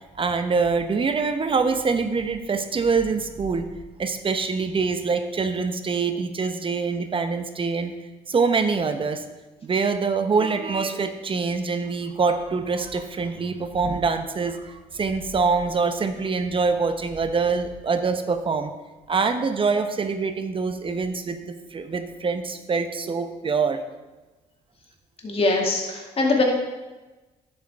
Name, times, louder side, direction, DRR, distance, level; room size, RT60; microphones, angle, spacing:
voice 1, 0.1-3.7 4.0-7.9 8.3-9.2 9.6-18.7 19.1-23.8, right 4 dB, 35° right, 8 dB, 0.9 m, -24 dB
voice 2, 25.2-26.4, left 3 dB, 40° left, 0 dB, 2.2 m, -22 dB
10.5 x 7.9 x 3.5 m, 1.2 s
supercardioid pair, 70°, 15 cm